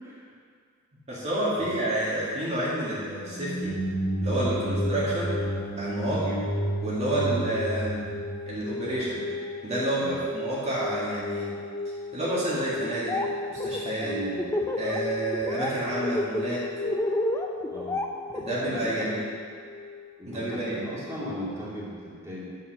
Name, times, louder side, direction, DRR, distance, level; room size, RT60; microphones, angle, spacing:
voice 1, 1.1-3.7 4.2-5.3 5.8-6.3 6.8-8.1 8.5-9.2 9.6-11.5 11.9-13.2 13.5-14.1 14.8-16.7 18.3-19.2 20.3-20.8, right 1 dB, 30° right, -8 dB, 2.1 m, -29 dB
sound 1, 3.2-9.3, right 1 dB, 75° left, 2.3 m, -31 dB
sound 2, 4.2-21.1, left 3 dB, 40° left, 1.5 m, -37 dB
voice 2, 4.5-4.9 6.1-6.4 7.1-7.4 10.0-10.2 14.0-14.5 17.7-18.0 18.6-19.2 20.2-22.4, equal, 15° right, -7 dB, 2.7 m, -37 dB
Laughter, 12.8-13.3 13.6-15.0 15.3-15.7 16.0-18.9, left 1 dB, 15° left, 0.6 m, -30 dB
9.1 x 7.1 x 6.5 m, 2.1 s
head